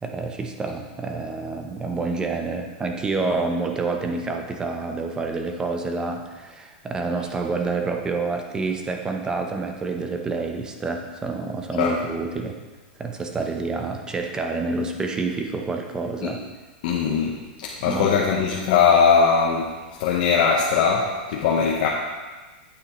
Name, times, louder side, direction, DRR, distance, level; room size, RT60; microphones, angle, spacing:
voice 1, 0.0-12.6 13.0-16.4 17.8-18.1, right 3 dB, 15° right, 4 dB, 0.8 m, -28 dB
voice 2, 16.8-17.3 17.6-19.7 20.0-21.9, left 6 dB, 60° left, -2 dB, 1.0 m, -20 dB
8.6 x 8.4 x 3.1 m, 1.3 s
supercardioid pair, 140°, 5 cm